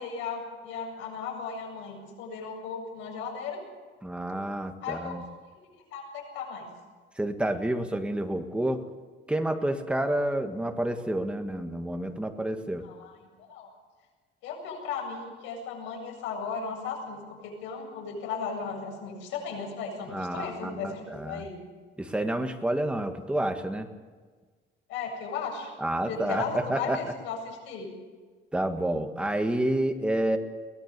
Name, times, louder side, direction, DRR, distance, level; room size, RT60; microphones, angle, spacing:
voice 1, 0.0-3.6 4.8-5.2 5.9-6.7 12.8-13.1 13.4-13.7 14.4-21.6 24.9-25.7 26.0-27.9, left 5 dB, 85° left, 1 dB, 7.9 m, -36 dB
voice 2, 4.0-5.2 7.2-8.8 9.3-12.8 20.1-21.5 22.0-23.9 25.8-27.0 28.5-30.4, right 1 dB, 5° right, 5 dB, 1.7 m, -29 dB
23.0 x 18.5 x 6.8 m, 1.4 s
cardioid pair, 150°, 19 cm